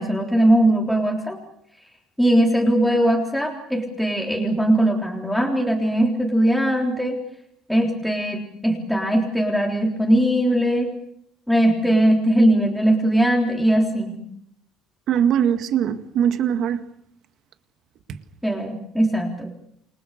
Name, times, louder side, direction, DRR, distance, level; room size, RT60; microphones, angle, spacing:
voice 1, 0.0-1.4 2.2-7.2 7.7-10.9 11.5-14.2 18.4-19.5, right 1 dB, ahead, 3.7 m, -20 dB
voice 2, 15.1-16.8, right 9 dB, 55° right, 2.0 m, -21 dB
29.0 x 22.0 x 6.8 m
cardioid pair, 150°, 0 cm